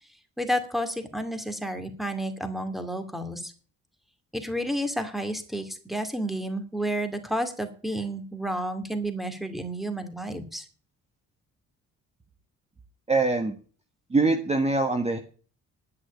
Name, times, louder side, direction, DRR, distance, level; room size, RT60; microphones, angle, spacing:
voice 1, 0.4-3.5 4.3-10.6, equal, ahead, 8 dB, 2.3 m, -31 dB
voice 2, 13.1-13.5 14.1-15.2, right 3 dB, 20° right, 6 dB, 1.4 m, -23 dB
11.0 x 6.3 x 8.8 m, 0.41 s
cardioid pair, 90°, 30 cm